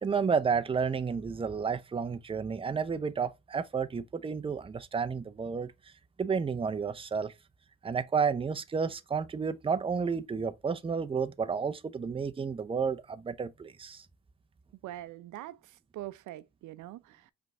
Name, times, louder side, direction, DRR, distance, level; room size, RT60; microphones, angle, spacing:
voice 1, 0.0-5.7 6.2-7.3 7.8-14.1, right 5 dB, 20° right, 0.5 m, -31 dB
voice 2, 14.8-17.3, right 14 dB, 80° right, 0.5 m, -43 dB
5.0 x 3.4 x 2.9 m
cardioid pair, 90°, 30 cm